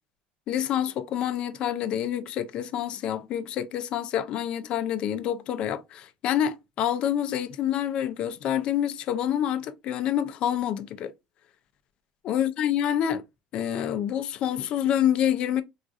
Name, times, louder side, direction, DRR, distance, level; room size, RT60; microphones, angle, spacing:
voice 1, 0.5-11.1 12.2-13.2 13.5-15.6, left 10 dB, 45° left, 0.4 m, -27 dB
3.7 x 2.4 x 2.4 m
cardioid pair, 145°, 2 cm